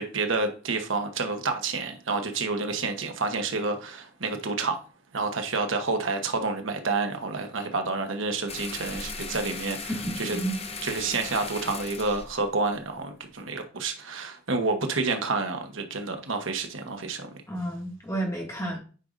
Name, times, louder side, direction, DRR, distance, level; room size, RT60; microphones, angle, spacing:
voice 1, 0.0-4.8 5.1-9.9 10.2-10.4 10.8-17.3, right 3 dB, 85° right, 1.2 m, -29 dB
sound 1, 8.5-13.4, left 4 dB, 35° left, 0.9 m, -38 dB
voice 2, 10.0-10.5 17.5-18.8, right 1 dB, 15° left, 2.2 m, -31 dB
9.3 x 5.1 x 2.6 m
head